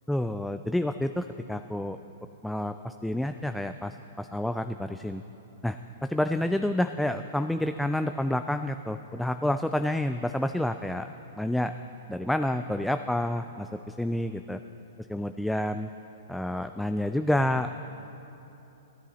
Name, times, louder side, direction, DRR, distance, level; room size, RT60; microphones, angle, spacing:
voice 1, 0.1-2.0 2.4-5.2 5.6-11.7 12.1-14.6 15.1-15.9 16.3-17.9, left 1 dB, 5° left, 8 dB, 0.3 m, -29 dB
16.0 x 10.5 x 4.2 m, 3.0 s
hypercardioid pair, 115°, 0 cm